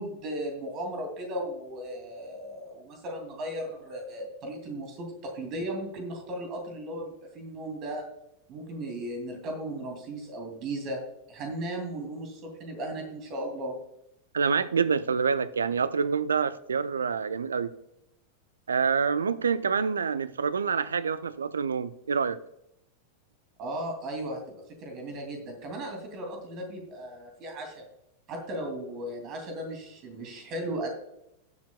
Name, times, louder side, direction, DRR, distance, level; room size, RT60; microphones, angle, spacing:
voice 1, 0.0-8.0 8.5-11.0 11.3-13.7 23.6-24.4 24.7-27.8 28.3-30.9, right 1 dB, 35° right, 2.4 m, -36 dB
voice 2, 14.3-17.7 18.7-22.4, right 6 dB, 70° right, 0.5 m, -27 dB
19.5 x 7.4 x 2.2 m
figure-of-eight pair, 90°, 0 cm